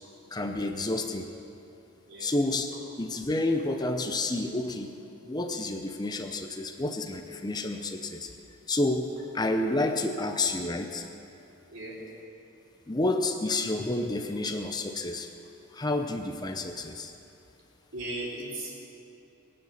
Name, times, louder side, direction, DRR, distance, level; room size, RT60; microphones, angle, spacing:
voice 1, 0.3-1.3 2.2-2.7 3.0-4.9 5.2-8.3 8.7-9.1 9.3-11.0 12.9-15.3 15.7-17.1, left 2 dB, 20° left, 5 dB, 0.6 m, -29 dB
voice 2, 2.0-2.3 11.7-12.0 17.9-18.7, right 1 dB, 55° right, -6 dB, 4.0 m, -37 dB
22.0 x 7.7 x 7.1 m, 2.8 s
head